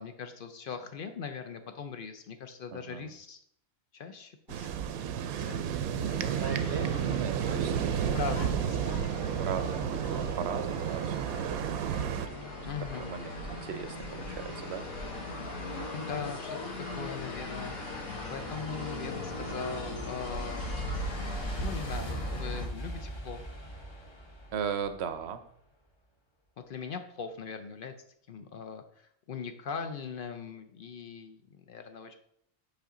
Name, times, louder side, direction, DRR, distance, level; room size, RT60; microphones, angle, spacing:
voice 1, 0.0-3.4 3.9-4.9 5.3-6.4 8.1-9.1 12.6-13.1 15.9-20.7 21.3-23.4 26.6-27.9 28.3-32.1, left 6 dB, 60° left, 8 dB, 0.6 m, -40 dB
voice 2, 2.7-3.1 5.7-8.2 9.3-12.7 13.0-14.9 24.5-25.4, right 7 dB, 60° right, 10 dB, 0.8 m, -38 dB
sound 1, 4.5-12.3, right 8 dB, 80° right, 1.0 m, -31 dB
sound 2, 6.1-22.7, left 1 dB, 80° left, 1.9 m, -39 dB
sound 3, 18.6-25.3, right 1 dB, 25° left, 0.7 m, -41 dB
5.8 x 5.7 x 3.7 m, 0.71 s
omnidirectional pair, 1.5 m